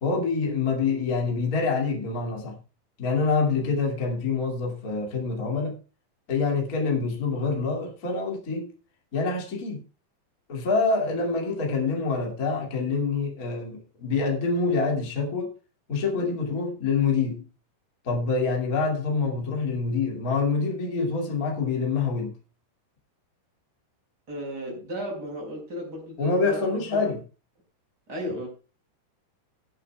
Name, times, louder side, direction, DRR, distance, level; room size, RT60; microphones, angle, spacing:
voice 1, 0.0-2.6 3.0-5.8 6.3-8.7 9.1-9.8 10.5-15.5 15.9-17.4 18.0-22.4 26.2-27.2, left 4 dB, 25° left, 2.1 m, -26 dB
voice 2, 24.3-27.1 28.1-28.5, equal, 25° right, 5.6 m, -35 dB
22.5 x 8.3 x 2.3 m
omnidirectional pair, 4.7 m